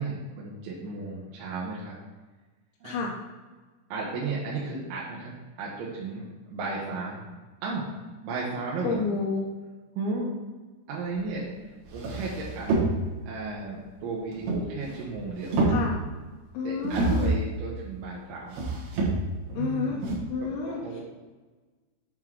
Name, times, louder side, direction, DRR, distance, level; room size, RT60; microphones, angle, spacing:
voice 1, 0.0-2.0 2.8-3.1 3.9-7.2 7.6-7.8 8.2-9.1 10.0-10.3 10.9-11.5 11.9-12.8 13.3-15.7 16.6-18.6 19.5-20.1 20.4-21.0, right 3 dB, 85° right, -5 dB, 3.4 m, -34 dB
voice 2, 8.8-9.5 15.6-16.0 16.5-17.4 19.5-20.0 20.3-20.8, left 5 dB, 85° left, -4 dB, 3.2 m, -29 dB
sound 1, 11.4-11.5 11.8-13.3 14.3-15.1 15.4-16.2 16.8-17.5 18.5-19.5 20.0-20.1, right 2 dB, 70° right, 3.3 m, -27 dB
8.9 x 3.9 x 4.6 m, 1.3 s
omnidirectional pair, 5.2 m